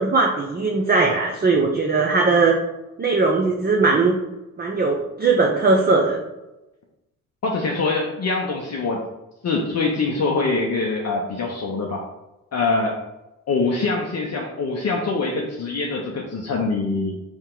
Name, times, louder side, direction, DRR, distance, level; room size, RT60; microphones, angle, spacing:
voice 1, 0.0-2.6 3.0-4.2 4.6-6.2, right 3 dB, 20° right, 0 dB, 0.6 m, -19 dB
voice 2, 7.4-9.0 9.4-12.1 12.5-13.0 13.5-17.2, left 3 dB, 35° left, 0 dB, 0.7 m, -24 dB
4.4 x 2.8 x 3.7 m, 0.98 s
hypercardioid pair, 55°, 45 cm